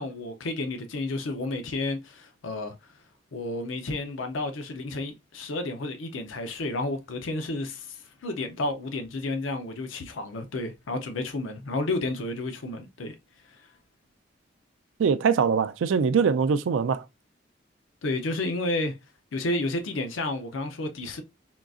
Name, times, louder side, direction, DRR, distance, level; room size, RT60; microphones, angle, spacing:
voice 1, 0.0-2.7 3.3-13.2 13.5-13.6 18.0-19.0 19.3-21.2, left 2 dB, 90° left, 0.6 m, -31 dB
voice 2, 15.0-17.1, right 6 dB, 80° right, 0.3 m, -23 dB
3.7 x 2.3 x 2.4 m
head